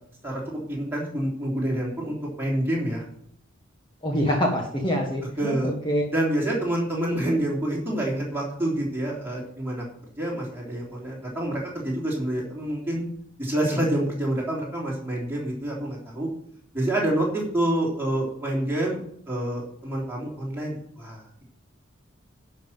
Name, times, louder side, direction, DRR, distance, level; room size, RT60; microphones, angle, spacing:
voice 1, 0.2-3.0 5.4-5.7 6.1-9.8 10.2-13.0 13.4-16.3 16.7-19.0 19.3-21.4, right 1 dB, 10° right, -4 dB, 3.4 m, -27 dB
voice 2, 4.0-6.0, equal, 20° left, -1 dB, 1.6 m, -25 dB
11.5 x 5.9 x 7.5 m, 0.67 s
head